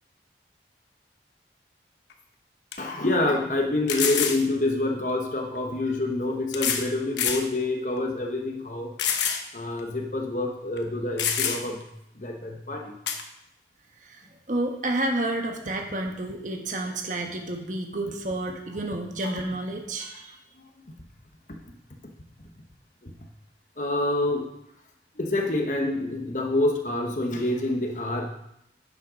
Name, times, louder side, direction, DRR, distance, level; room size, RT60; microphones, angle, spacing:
sound 1, 2.1-2.2 2.7-2.8 3.9-4.4 5.6-5.7 6.5-6.9 7.2-7.5 8.0-8.1 9.0-9.4 9.8-9.9 10.8-10.9 11.2-11.8 13.1-13.2, left 7 dB, 90° left, 1.1 m, -26 dB
voice 1, 2.8-8.9 9.5-11.8 12.1-12.9 19.2-19.4 20.0-20.2 23.0-23.1 23.8-24.5 25.2-28.3, left 2 dB, 45° left, 2 dB, 1.1 m, -27 dB
voice 2, 14.0-20.4, right 1 dB, 45° right, 2 dB, 1.3 m, -30 dB
10.0 x 7.5 x 5.0 m, 0.81 s
head